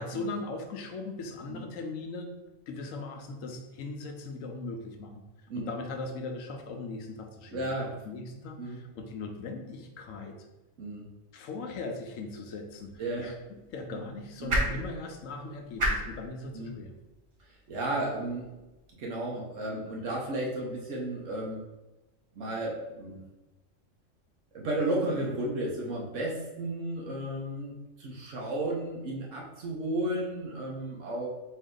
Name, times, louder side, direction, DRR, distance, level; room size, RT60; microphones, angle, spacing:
voice 1, 0.0-2.3 2.7-5.2 5.5-10.4 11.3-13.3 13.7-16.9, left 3 dB, 85° left, 4 dB, 1.0 m, -39 dB
voice 2, 7.5-7.9 8.6-8.8 10.8-11.1 13.0-13.3 13.9-14.0 14.4-14.6 16.5-16.7 17.4-18.5 19.0-21.6 22.3-23.2 24.5-31.3, right 1 dB, 75° right, -3 dB, 1.1 m, -33 dB
sound 1, 12.7-18.9, right 1 dB, 35° right, 0.5 m, -36 dB
4.2 x 2.7 x 3.7 m, 1.0 s
omnidirectional pair, 1.3 m